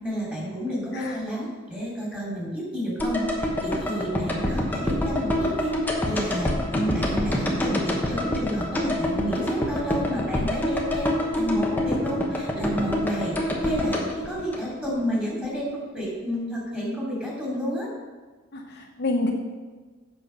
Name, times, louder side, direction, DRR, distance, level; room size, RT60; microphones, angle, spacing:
voice 1, 0.0-17.9, equal, 5° right, -5 dB, 3.0 m, -30 dB
sound 1, 3.0-15.2 15.4-15.5, left 1 dB, 10° left, 1.1 m, -26 dB
voice 2, 18.5-19.3, left 2 dB, 55° left, 2 dB, 0.8 m, -28 dB
8.0 x 5.9 x 5.8 m, 1.3 s
head